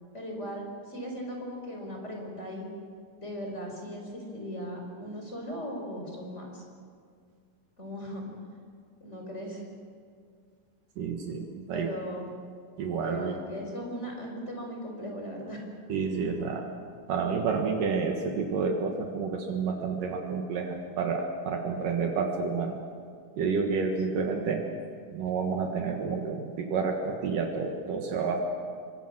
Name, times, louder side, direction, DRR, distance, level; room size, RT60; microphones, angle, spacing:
voice 1, 0.1-2.7 3.2-6.6 7.8-8.6 9.0-9.7 11.7-12.3 13.0-15.6, equal, 20° left, 1 dB, 4.8 m, -38 dB
voice 2, 11.0-11.9 12.8-13.3 15.9-16.7 17.1-22.8 23.4-24.6 25.1-28.4, right 5 dB, 75° right, 2 dB, 3.2 m, -29 dB
28.0 x 24.0 x 6.3 m, 2.1 s
omnidirectional pair, 3.9 m